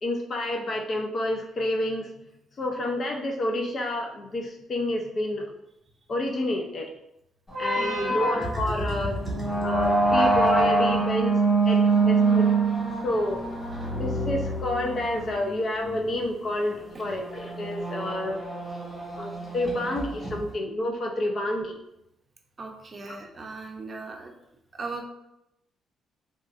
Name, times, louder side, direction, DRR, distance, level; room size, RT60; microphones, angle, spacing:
voice 1, 0.0-2.1 2.6-5.5 6.1-6.9 7.6-9.2 9.6-11.4 11.7-12.5 13.0-13.4 14.0-18.4 19.2-21.8 23.0-23.2, left 1 dB, 45° left, 3 dB, 0.5 m, -29 dB
sound 1, 7.5-15.3, right 3 dB, 20° left, 1.3 m, -23 dB
voice 2, 7.8-8.2 22.6-24.3 24.7-25.0, right 3 dB, 35° right, 2 dB, 0.5 m, -38 dB
sound 2, 8.4-20.5, right 1 dB, ahead, 1.3 m, -37 dB
3.7 x 2.3 x 2.4 m, 0.85 s
cardioid pair, 90°, 0 cm